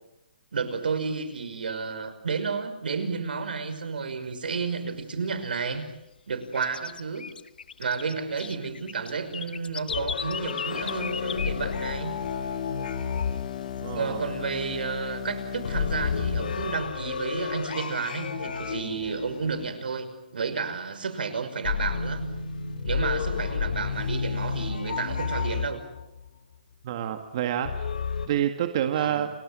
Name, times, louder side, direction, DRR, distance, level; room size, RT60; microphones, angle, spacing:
voice 1, 0.5-5.8 6.3-7.3 7.8-12.1 13.9-22.3 22.8-25.8 28.9-29.3, right 5 dB, 85° right, 10 dB, 5.6 m, -31 dB
sound 1, 4.3-5.8 6.1-12.2 12.5-12.6 12.9-13.4 13.7-14.9 15.2-15.3 15.6-15.7 16.2-17.4 17.8-19.1, left 6 dB, 85° left, 1.3 m, -38 dB
sound 2, 9.9-14.5 15.6-20.4 21.7-26.3 27.7-28.3, left 6 dB, 70° left, 3.0 m, -31 dB
sound 3, 10.7-16.9, left 8 dB, 50° left, 2.2 m, -36 dB
voice 2, 13.8-14.2 26.8-27.7 28.3-29.3, right 10 dB, 35° right, 6 dB, 1.9 m, -27 dB
29.5 x 22.0 x 8.2 m, 0.86 s
hypercardioid pair, 170°, 5 cm